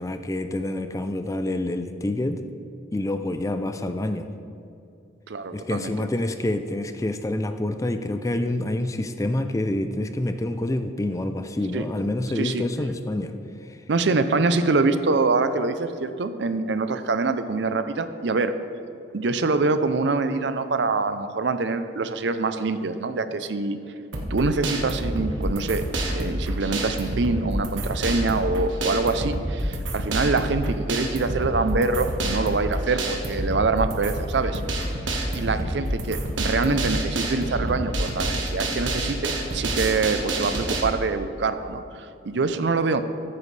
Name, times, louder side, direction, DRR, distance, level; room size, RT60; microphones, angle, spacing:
voice 1, 0.0-2.4 2.9-4.3 5.5-13.4 13.6-13.8, left 1 dB, 15° left, 9 dB, 0.4 m, -27 dB
voice 2, 5.3-5.9 11.7-11.9 12.4-12.6 13.9-18.6 19.1-23.8 24.3-25.8 26.1-34.6 35.3-43.0, right 3 dB, 65° right, 10 dB, 0.6 m, -25 dB
sound 1, 24.1-40.8, right 1 dB, 90° right, 1.4 m, -28 dB
14.0 x 9.6 x 3.3 m, 2.7 s
head